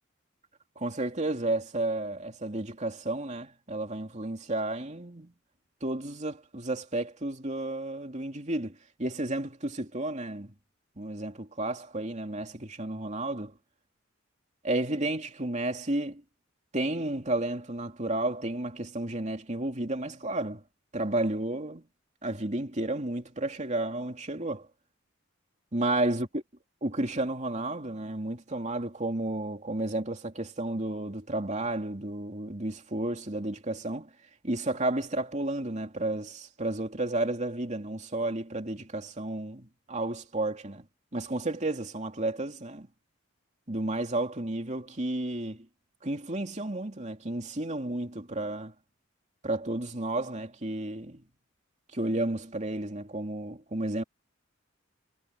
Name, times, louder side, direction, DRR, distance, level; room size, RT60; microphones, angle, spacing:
voice 1, 0.8-5.3 5.8-10.5 11.0-13.5 14.6-16.2 16.7-20.6 20.9-21.8 22.2-24.7 25.7-26.4 26.8-34.1 34.4-40.8 41.1-42.9 43.7-45.7 46.0-48.7 49.4-51.2 51.9-54.0, right 2 dB, 35° right, 2.8 m, -32 dB
head